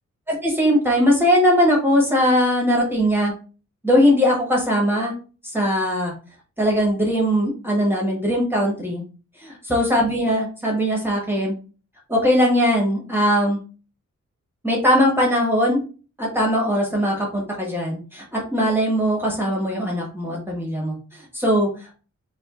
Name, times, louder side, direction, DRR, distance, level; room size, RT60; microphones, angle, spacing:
voice 1, 0.3-3.3 3.8-5.1 5.5-6.1 6.6-9.0 9.4-11.5 12.1-13.6 14.6-15.8 16.2-21.9, equal, 5° right, -2 dB, 1.3 m, -20 dB
5.1 x 2.4 x 2.5 m, 0.36 s
wide cardioid pair, 140°, 29 cm